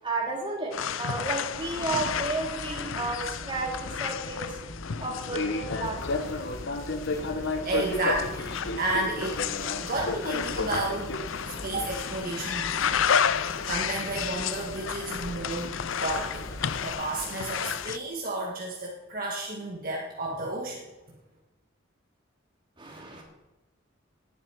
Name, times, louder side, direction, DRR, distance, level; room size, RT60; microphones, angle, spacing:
voice 1, 0.0-4.6 5.0-6.1 22.8-23.2, right 3 dB, 25° right, -1 dB, 3.0 m, -32 dB
sound 1, 0.7-18.0, left 7 dB, 80° left, 0.5 m, -32 dB
Fixed-wing aircraft airplane, 1.5-16.9, left 2 dB, 60° left, 1.1 m, -36 dB
sound 2, 5.8-17.9, left 1 dB, 15° left, 1.9 m, -45 dB
voice 2, 7.6-8.5 8.8-9.4 9.8-11.1 11.6-12.9 13.4-16.5 16.8-20.8, right 2 dB, 45° right, -2 dB, 1.8 m, -32 dB
18.0 x 9.2 x 4.8 m, 1.1 s
head